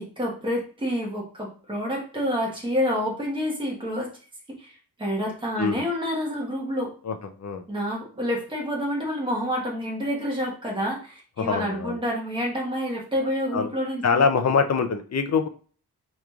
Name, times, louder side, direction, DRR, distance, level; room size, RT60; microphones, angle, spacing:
voice 1, 0.0-4.1 4.6-6.9 7.7-14.2, equal, 15° right, -3 dB, 1.2 m, -28 dB
voice 2, 7.0-7.6 11.4-12.0 13.5-13.7 14.0-15.5, left 5 dB, 45° left, 7 dB, 0.5 m, -24 dB
4.8 x 3.0 x 2.3 m, 0.41 s
wide cardioid pair, 165°, 39 cm